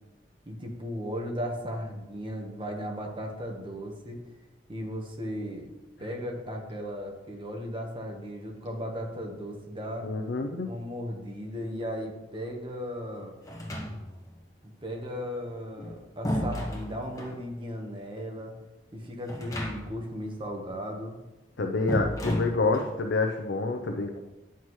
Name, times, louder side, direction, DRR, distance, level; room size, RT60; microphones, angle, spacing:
voice 1, 0.4-4.2 4.7-5.7 6.0-10.1 10.6-13.3 14.6-18.5 18.9-21.2, equal, 30° right, 2 dB, 1.2 m, -36 dB
voice 2, 10.0-10.7 21.6-24.2, left 3 dB, 80° left, 4 dB, 0.6 m, -27 dB
sound 1, 13.5-14.3 15.6-17.4 19.3-20.1 20.3-20.4 21.9-23.0, equal, 20° left, 1.1 m, -33 dB
9.4 x 5.9 x 3.1 m, 1.0 s
head